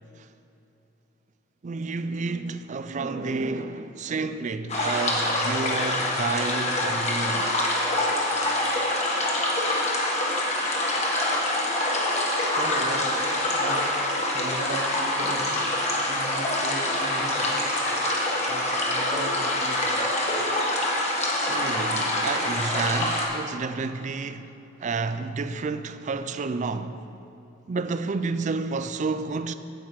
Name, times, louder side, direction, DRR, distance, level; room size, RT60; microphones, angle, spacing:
voice 1, 1.6-7.6 21.5-24.5 24.8-27.0 27.7-29.5, right 4 dB, 40° right, 0.4 m, -30 dB
sound 1, 4.7-23.3, left 1 dB, 35° left, 1.4 m, -25 dB
voice 2, 12.5-13.1 13.5-14.0 14.3-15.7 16.1-17.6 18.5-20.0, right 2 dB, 65° right, 1.1 m, -36 dB
9.5 x 8.1 x 4.7 m
head